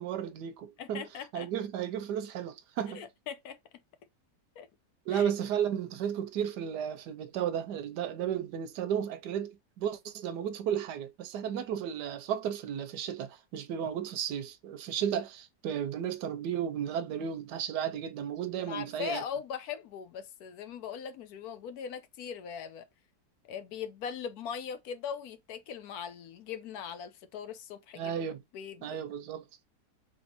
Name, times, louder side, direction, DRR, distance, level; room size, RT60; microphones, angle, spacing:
voice 1, 0.0-1.0 1.3-3.0 5.1-19.2 28.0-28.4 28.8-29.4, right 9 dB, 90° right, 1.3 m, -34 dB
voice 2, 0.8-1.5 2.9-3.6 4.6-4.7 5.1-5.3 18.6-22.8 23.4-28.1 28.5-29.0, left 7 dB, 70° left, 1.1 m, -40 dB
5.2 x 3.2 x 2.6 m
omnidirectional pair, 1.7 m